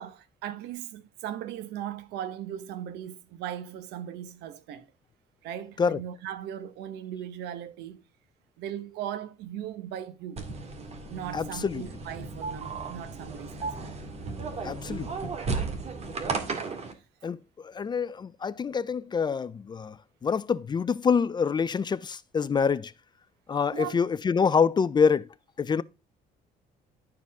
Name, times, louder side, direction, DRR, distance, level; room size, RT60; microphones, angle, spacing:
voice 1, 0.0-4.9 5.4-8.0 8.6-10.4 11.1-14.0 16.9-17.0 23.7-24.0, right 10 dB, 85° right, 1.1 m, -38 dB
sound 1, 10.4-16.9, right 4 dB, 40° right, 2.0 m, -34 dB
voice 2, 11.3-11.8 14.6-15.1 17.2-17.4 17.6-20.0 20.2-22.9 23.5-25.3 25.6-25.8, left 6 dB, 25° left, 0.4 m, -26 dB
12.0 x 4.9 x 3.5 m
cardioid pair, 110°, 17 cm